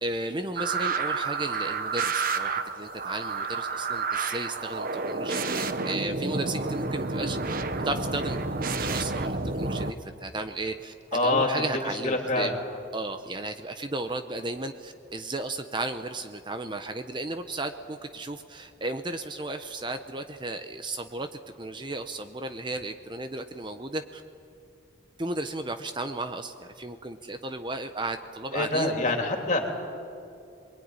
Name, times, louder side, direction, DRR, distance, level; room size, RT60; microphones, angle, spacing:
voice 1, 0.0-7.6 7.8-10.9 11.2-12.5 12.9-21.3 21.6-24.2 25.2-28.9, right 2 dB, 25° right, 7 dB, 0.8 m, -34 dB
sound 1, 0.6-9.9, right 3 dB, 45° right, 1.1 m, -30 dB
voice 2, 11.1-11.5 12.0-12.6 28.5-29.7, left 2 dB, 40° left, 2 dB, 3.3 m, -25 dB
27.0 x 22.0 x 9.7 m, 2.6 s
head